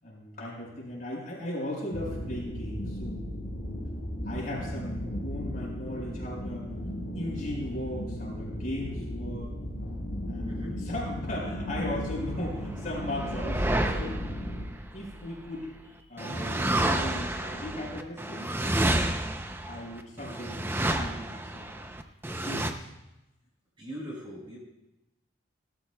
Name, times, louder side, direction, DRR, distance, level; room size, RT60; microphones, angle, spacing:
voice 1, 0.0-3.3 4.2-6.7 7.1-9.5 10.3-14.2 14.9-15.7 16.1-18.5 19.7-20.6 21.0-21.8 22.4-22.7, left 1 dB, 45° left, -4 dB, 4.7 m, -37 dB
sound 1, 1.9-14.6, equal, 70° left, 3.3 m, -36 dB
voice 2, 10.5-10.8 23.8-24.6, equal, 25° right, -4 dB, 4.9 m, -40 dB
sound 2, 12.5-15.6 16.2-22.7, right 1 dB, 10° right, 0.5 m, -30 dB
18.0 x 13.0 x 2.3 m, 0.95 s
head